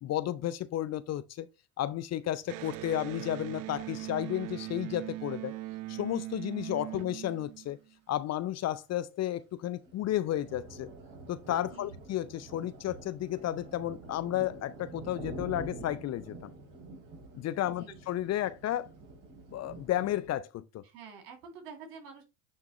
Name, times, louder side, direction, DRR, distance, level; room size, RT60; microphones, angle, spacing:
voice 1, 0.0-1.5 1.8-5.5 5.9-7.8 8.1-10.9 11.3-16.5 17.3-18.9 19.5-20.8, left 13 dB, 35° left, 0.4 m, -33 dB
Electric guitar, 2.5-7.9, right 17 dB, 45° right, 0.5 m, -40 dB
sound 1, 9.6-20.4, right 2 dB, 65° right, 4.3 m, -47 dB
voice 2, 20.8-22.2, right 5 dB, 80° right, 2.5 m, -48 dB
9.4 x 3.5 x 3.0 m
hypercardioid pair, 85°, 48 cm